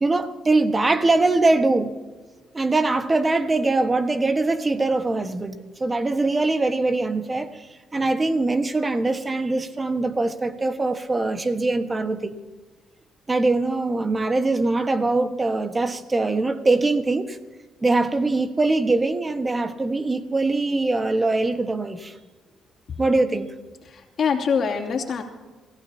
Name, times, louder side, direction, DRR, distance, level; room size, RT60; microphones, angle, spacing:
voice 1, 0.0-1.9 2.5-12.4 13.3-17.4 17.8-22.1 23.0-23.5, right 2 dB, 25° right, 8 dB, 1.5 m, -22 dB
voice 2, 23.8-25.2, left 6 dB, 55° left, 1 dB, 2.9 m, -24 dB
27.5 x 16.0 x 2.9 m, 1.3 s
cardioid pair, 90°, 0 cm